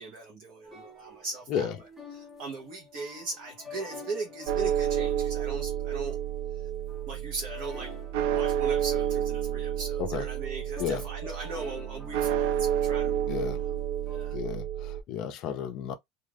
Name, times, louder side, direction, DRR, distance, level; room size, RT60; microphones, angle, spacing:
voice 1, 0.0-1.7 2.1-6.2 7.1-8.0 8.3-13.4 13.6-13.7 14.1-14.4, right 3 dB, 40° right, 0.8 m, -39 dB
sound 1, 0.6-14.4, left 2 dB, 10° right, 0.9 m, -48 dB
sound 2, 4.5-15.0, right 10 dB, 65° right, 0.5 m, -30 dB
voice 2, 13.3-13.6 14.3-15.9, left 8 dB, 40° left, 0.5 m, -32 dB
2.4 x 2.3 x 3.3 m
cardioid pair, 175°, 0 cm